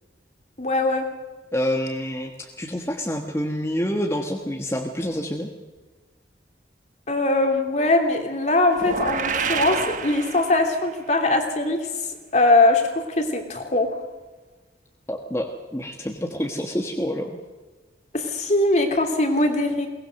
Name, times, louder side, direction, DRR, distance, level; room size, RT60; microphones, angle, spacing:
voice 1, 0.6-1.1 7.1-11.8 12.3-14.0 18.1-19.9, left 2 dB, 40° left, 4 dB, 2.9 m, -21 dB
voice 2, 1.5-5.5 15.1-17.3, equal, 15° left, 1 dB, 1.5 m, -27 dB
sound 1, 8.7-11.0, right 5 dB, 45° right, 1.3 m, -28 dB
22.5 x 19.5 x 6.6 m, 1.3 s
head